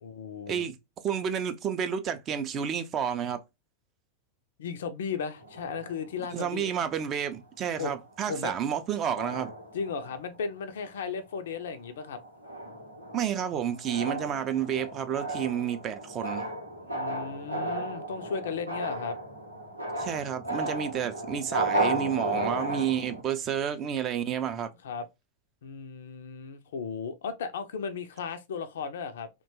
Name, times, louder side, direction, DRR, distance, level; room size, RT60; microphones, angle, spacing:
voice 1, 0.0-0.6 4.6-6.7 7.8-7.9 8.3-8.5 9.7-12.2 16.8-19.2 22.3-22.5 24.8-25.1 25.6-29.3, left 5 dB, 60° left, 0.4 m, -35 dB
voice 2, 1.0-3.4 6.3-9.5 13.1-16.5 20.0-24.7, right 8 dB, 30° right, 0.4 m, -30 dB
sound 1, 5.4-7.2 7.9-8.1 8.4-8.8 9.2-10.4 10.9-11.2 11.6-23.2, right 1 dB, 85° right, 0.7 m, -35 dB
2.8 x 2.2 x 2.6 m
figure-of-eight pair, 90°, 0 cm